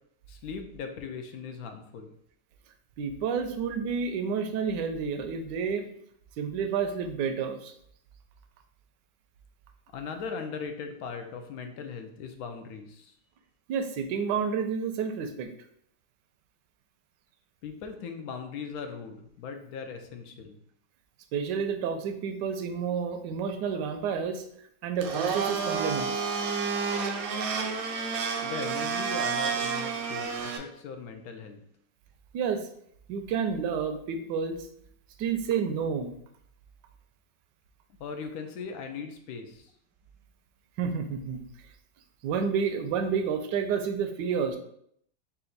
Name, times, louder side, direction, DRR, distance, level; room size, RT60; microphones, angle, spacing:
voice 1, 0.3-2.1 9.9-13.2 17.6-20.6 28.4-31.6 38.0-39.7, left 5 dB, 70° left, 6 dB, 0.9 m, -39 dB
voice 2, 3.0-5.9 6.4-7.7 13.7-15.5 21.3-24.4 24.8-26.1 32.3-32.7 33.1-34.7 35.2-36.1 40.8-41.4 42.2-44.6, right 6 dB, 85° right, 7 dB, 1.2 m, -30 dB
Domestic sounds home sounds, 25.0-30.6, right 5 dB, 70° right, 0.9 m, -30 dB
4.2 x 2.5 x 3.9 m, 0.69 s
omnidirectional pair, 1.8 m